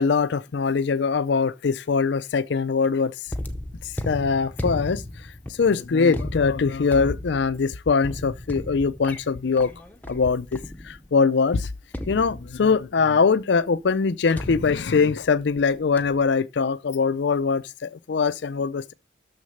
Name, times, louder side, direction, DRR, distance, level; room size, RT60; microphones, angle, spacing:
voice 1, 0.0-3.1 4.1-5.0 5.6-9.7 10.1-11.7 12.1-18.9, left 5 dB, 60° left, 0.4 m, -22 dB
sound 1, 3.3-11.2 11.9-12.9 14.4-15.6 16.0-16.3, left 1 dB, 10° left, 0.7 m, -35 dB
6.6 x 6.4 x 6.5 m
head